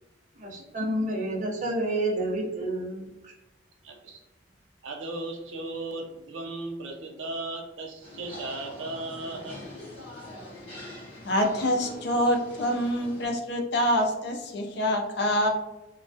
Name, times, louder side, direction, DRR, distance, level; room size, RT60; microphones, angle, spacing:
voice 1, 0.4-3.3, right 1 dB, 40° right, -2 dB, 0.6 m, -29 dB
voice 2, 3.8-4.2 4.8-9.6, right 2 dB, 90° right, 3 dB, 0.5 m, -36 dB
sound 1, 8.0-13.3, left 1 dB, 30° left, 0.9 m, -43 dB
voice 3, 11.2-15.5, equal, 60° left, 3 dB, 0.4 m, -26 dB
2.2 x 2.1 x 2.6 m, 1.0 s
head